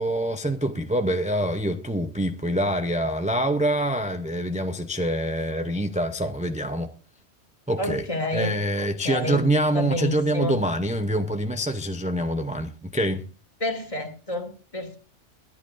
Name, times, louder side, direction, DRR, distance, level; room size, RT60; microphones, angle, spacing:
voice 1, 0.0-6.9 7.7-8.0 8.3-13.3, right 1 dB, 10° right, 0.4 m, -25 dB
voice 2, 7.8-8.5 8.8-9.5 9.7-10.5 13.6-15.0, left 1 dB, 25° left, 2.3 m, -29 dB
23.0 x 11.5 x 2.6 m
omnidirectional pair, 1.3 m